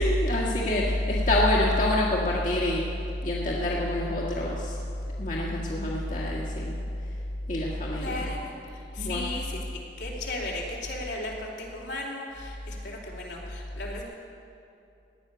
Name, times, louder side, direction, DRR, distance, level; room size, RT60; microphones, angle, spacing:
voice 1, 0.0-2.8 3.2-4.8 5.2-6.8 7.5-8.3 9.0-9.2, left 1 dB, 45° left, -4 dB, 1.7 m, -26 dB
voice 2, 8.0-14.0, left 2 dB, 80° left, -3 dB, 3.1 m, -36 dB
18.0 x 6.4 x 10.0 m, 2.7 s
head